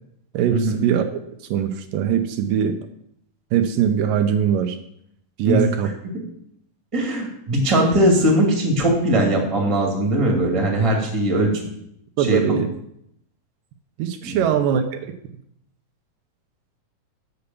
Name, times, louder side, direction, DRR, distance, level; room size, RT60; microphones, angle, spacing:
voice 1, 0.3-1.0 1.5-2.8 3.5-4.8 5.4-5.9 12.2-12.7 14.0-15.1, right 8 dB, 80° right, 6 dB, 2.3 m, -21 dB
voice 2, 6.9-11.6 12.2-12.6 14.2-14.4, right 1 dB, 10° right, 0 dB, 1.7 m, -20 dB
8.0 x 6.7 x 7.0 m, 0.74 s
omnidirectional pair, 4.0 m